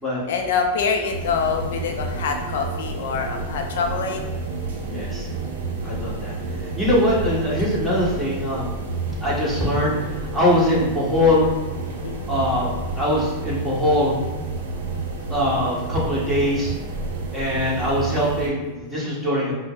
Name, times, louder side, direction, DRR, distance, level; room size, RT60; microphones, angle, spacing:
voice 1, 0.3-4.2 4.5-4.7 12.0-12.3, left 5 dB, 75° left, 4 dB, 0.4 m, -25 dB
sound 1, 1.1-18.5, right 3 dB, 80° right, 0.6 m, -30 dB
voice 2, 4.8-5.3 5.8-6.3 6.6-8.7 9.2-11.5 12.3-14.2 15.3-16.7 17.3-19.5, left 1 dB, 5° right, -8 dB, 1.4 m, -22 dB
5.3 x 2.0 x 2.5 m, 1.2 s
hypercardioid pair, 120°, 0 cm